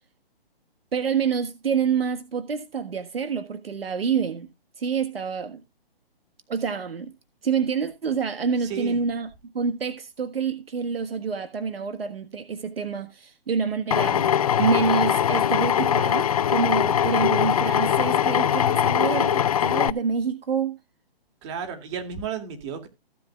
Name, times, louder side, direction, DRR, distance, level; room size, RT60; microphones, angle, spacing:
voice 1, 0.9-4.5 4.8-5.6 6.5-7.1 7.4-14.3 14.6-20.8, right 6 dB, 75° right, 1.6 m, -27 dB
voice 2, 8.6-9.0 21.4-22.9, right 7 dB, 30° right, 2.6 m, -33 dB
Drill, 13.9-19.9, left 9 dB, 40° left, 0.5 m, -21 dB
16.5 x 8.2 x 2.4 m
hypercardioid pair, 150°, 30 cm